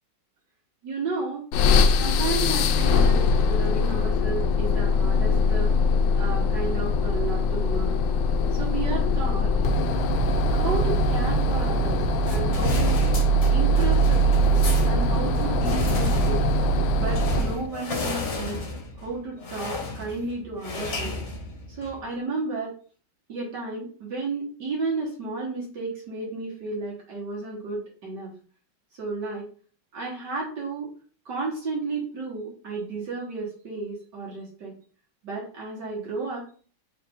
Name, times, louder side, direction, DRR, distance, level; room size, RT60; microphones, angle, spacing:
voice 1, 0.8-1.4 2.0-5.7 6.2-8.0 8.5-9.5 10.5-12.0 12.3-13.0 13.5-16.4 16.9-18.6 19.0-21.1 21.8-22.7 23.3-28.3 29.0-29.5 29.9-30.9 31.3-34.7 35.2-36.4, right 3 dB, 60° right, -4 dB, 1.8 m, -32 dB
sound 1, 1.5-17.7, left 1 dB, 80° left, 1.3 m, -22 dB
sound 2, 12.2-22.0, left 2 dB, 45° left, 1.1 m, -33 dB
4.7 x 3.0 x 3.5 m, 0.42 s
omnidirectional pair, 2.1 m